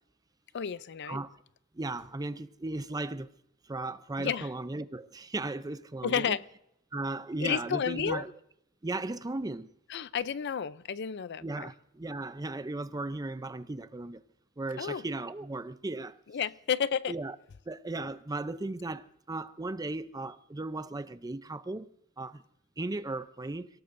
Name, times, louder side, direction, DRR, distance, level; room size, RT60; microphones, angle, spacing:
voice 1, 0.5-1.2 4.2-4.5 6.0-6.4 7.4-8.2 9.9-11.7 14.8-15.0 16.3-17.1, left 7 dB, 55° left, 0.5 m, -31 dB
voice 2, 1.0-1.4 1.7-3.3 3.7-6.4 6.9-8.3 8.8-9.7 11.4-14.2 14.6-16.2 17.1-17.4 17.7-21.9 22.2-22.4 22.8-23.7, right 2 dB, 20° right, 0.5 m, -36 dB
29.5 x 17.5 x 2.6 m
head